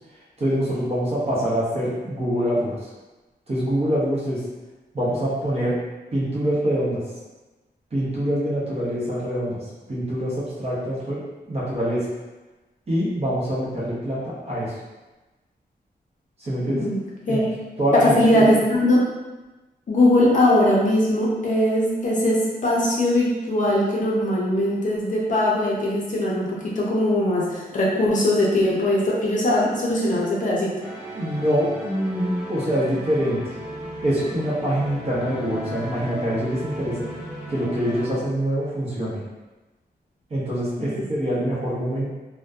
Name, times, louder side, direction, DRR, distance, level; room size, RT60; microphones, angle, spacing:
voice 1, 0.4-2.7 3.5-4.4 4.9-5.8 6.1-7.0 7.9-9.5 9.9-11.2 11.5-12.0 12.9-14.7 16.4-16.9 17.3-17.4 17.8-18.5 31.1-33.4 34.0-37.1 37.5-39.2 40.3-42.1, equal, 35° right, -8 dB, 0.7 m, -24 dB
voice 2, 17.9-19.0 19.9-30.7 41.0-41.1, left 1 dB, 50° left, -5 dB, 0.5 m, -20 dB
sound 1, 30.8-38.1, equal, 5° right, 0.4 m, -36 dB
2.6 x 2.1 x 2.3 m, 1.2 s
wide cardioid pair, 180°, 17 cm